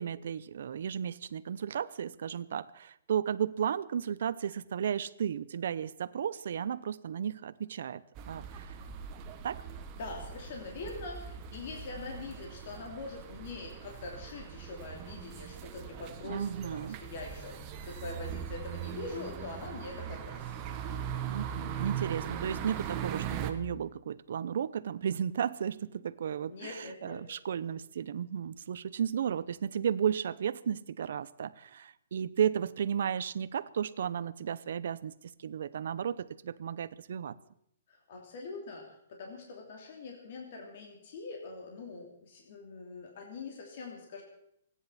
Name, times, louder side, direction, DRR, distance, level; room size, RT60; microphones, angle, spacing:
voice 1, 0.0-8.8 9.4-9.6 16.2-17.0 21.3-35.1 35.4-37.4, right 8 dB, 65° right, 16 dB, 0.7 m, -34 dB
sound 1, 8.2-23.5, right 9 dB, 25° right, 1.2 m, -40 dB
voice 2, 9.9-20.7 26.5-27.2 37.9-44.2, left 3 dB, 50° left, 0 dB, 3.0 m, -43 dB
29.0 x 10.0 x 4.2 m, 0.74 s
hypercardioid pair, 165°, 0 cm